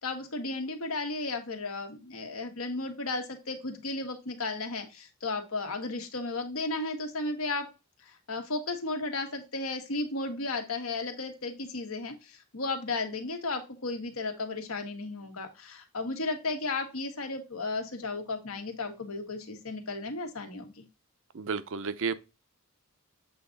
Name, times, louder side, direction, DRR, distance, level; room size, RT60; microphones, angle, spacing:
voice 1, 0.0-7.7 8.0-20.8, left 3 dB, 75° left, 1.5 m, -34 dB
voice 2, 21.3-22.1, right 5 dB, 60° right, 0.6 m, -31 dB
7.9 x 3.8 x 3.9 m
head